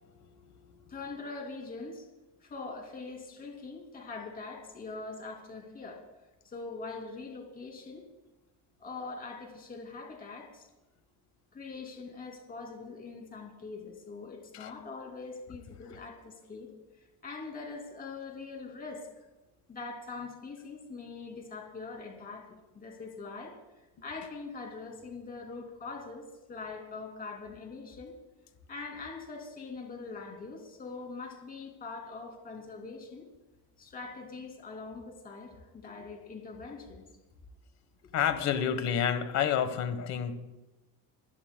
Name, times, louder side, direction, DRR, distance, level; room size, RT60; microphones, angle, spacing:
voice 1, 0.9-2.1 2.4-6.0 6.4-8.0 8.8-10.7 11.5-16.7 17.2-19.1 19.7-23.5 24.0-28.1 28.7-33.2 33.8-37.0 38.0-38.1, left 4 dB, 25° left, 1 dB, 2.6 m, -43 dB
voice 2, 38.1-40.4, left 8 dB, 45° left, 10 dB, 1.3 m, -29 dB
26.5 x 15.5 x 2.2 m, 1.1 s
cardioid pair, 180°, 38 cm